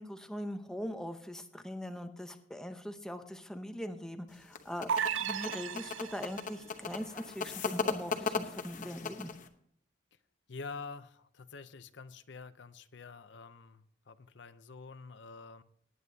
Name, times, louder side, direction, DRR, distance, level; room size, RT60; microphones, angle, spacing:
voice 1, 0.0-4.9 5.2-9.3, equal, 5° left, 6 dB, 0.8 m, -41 dB
sound 1, 4.3-9.5, left 5 dB, 40° left, 0.9 m, -37 dB
sound 2, 4.9-6.5, right 7 dB, 80° right, 0.4 m, -34 dB
voice 2, 10.5-15.6, left 4 dB, 65° left, 12 dB, 0.6 m, -47 dB
19.0 x 9.4 x 2.7 m, 0.63 s
head